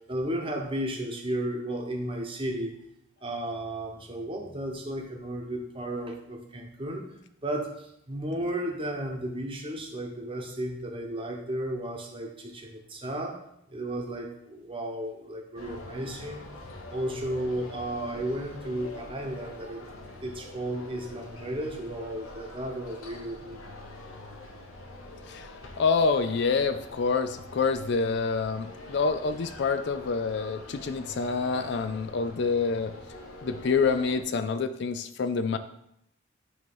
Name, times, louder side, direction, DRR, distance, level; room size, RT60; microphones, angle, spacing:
voice 1, 0.1-2.7 3.2-7.0 7.4-13.4 13.7-16.5 16.9-19.8 20.2-23.6, right 1 dB, 25° right, 1 dB, 1.0 m, -34 dB
sound 1, 15.6-34.2, left 1 dB, 85° left, 1.2 m, -45 dB
voice 2, 25.3-32.9 33.4-35.6, left 4 dB, 55° left, 10 dB, 0.4 m, -27 dB
9.3 x 3.1 x 5.4 m, 0.77 s
head